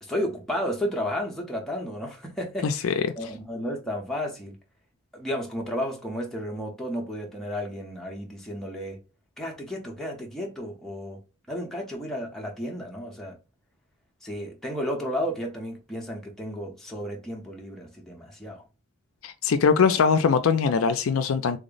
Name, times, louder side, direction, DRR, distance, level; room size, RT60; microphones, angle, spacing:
voice 1, 0.0-4.6 5.1-9.0 9.4-11.2 11.5-13.4 14.2-18.6, equal, ahead, 0.7 m, -33 dB
voice 2, 2.6-3.0 19.2-21.6, left 6 dB, 65° left, 0.4 m, -22 dB
3.3 x 2.1 x 3.8 m
head